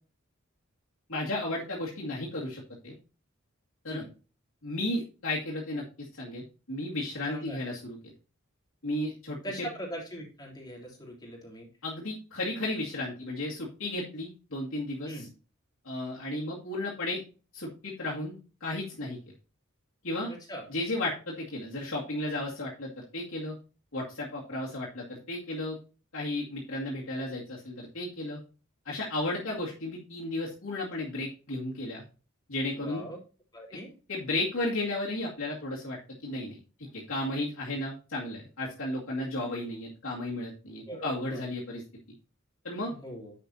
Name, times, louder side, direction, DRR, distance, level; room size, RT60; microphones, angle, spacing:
voice 1, 1.1-2.9 3.8-4.0 4.6-8.0 8.8-9.7 11.8-15.2 15.8-17.2 17.5-18.3 18.6-19.2 20.0-20.3 20.7-23.6 23.9-25.8 26.1-28.4 28.9-32.0 32.5-33.0 34.1-41.8 42.6-42.9, left 1 dB, 70° left, -5 dB, 2.2 m, -34 dB
voice 2, 7.3-7.6 9.4-11.7 15.0-15.3 20.3-20.7 32.8-33.2 33.5-33.9 40.8-41.4 42.9-43.3, equal, 20° left, -2 dB, 3.4 m, -41 dB
10.0 x 6.6 x 2.8 m, 0.34 s
head